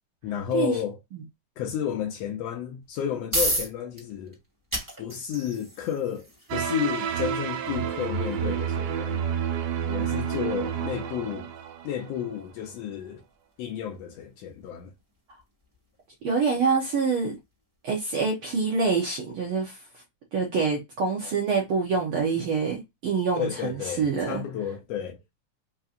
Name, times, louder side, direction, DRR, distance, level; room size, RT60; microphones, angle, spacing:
voice 1, 0.2-1.0 1.6-4.4 5.0-9.3 9.9-11.5 11.8-13.2 13.6-14.9 23.4-25.2, left 9 dB, 80° left, 1.4 m, -32 dB
sound 1, 2.8-17.7, right 1 dB, 10° right, 1.2 m, -37 dB
sound 2, 6.5-12.3, right 8 dB, 90° right, 2.3 m, -29 dB
voice 2, 16.2-17.4 17.8-19.8 20.3-24.4, right 5 dB, 70° right, 1.3 m, -26 dB
5.2 x 2.8 x 2.5 m
omnidirectional pair, 3.6 m